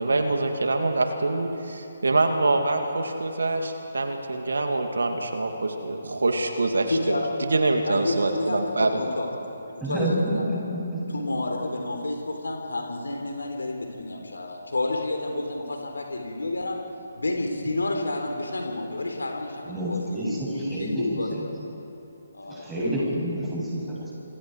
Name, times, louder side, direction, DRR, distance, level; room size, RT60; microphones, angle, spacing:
voice 1, 0.0-7.2 7.5-9.0, right 2 dB, 75° right, 4 dB, 2.3 m, -25 dB
voice 2, 6.9-7.3 7.8-9.3 9.9-10.0 10.3-10.4 11.1-16.8 17.2-21.5 22.3-22.9, left 2 dB, 80° left, 2 dB, 3.6 m, -30 dB
voice 3, 9.8-11.2 19.6-21.5 22.5-24.1, right 1 dB, 10° right, -6 dB, 7.6 m, -29 dB
27.0 x 26.5 x 4.7 m, 2.9 s
figure-of-eight pair, 140°, 0 cm